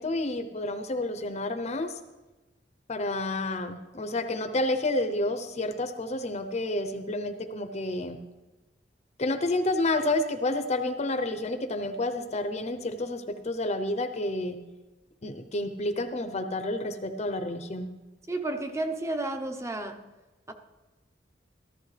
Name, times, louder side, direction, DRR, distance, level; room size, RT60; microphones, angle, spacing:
voice 1, 0.0-2.0 2.9-8.2 9.2-14.6 15.2-17.9, left 2 dB, 40° left, 9 dB, 0.7 m, -30 dB
voice 2, 18.3-20.0 20.5-20.6, right 2 dB, 15° right, 6 dB, 0.9 m, -31 dB
14.5 x 13.0 x 3.3 m, 1.1 s
head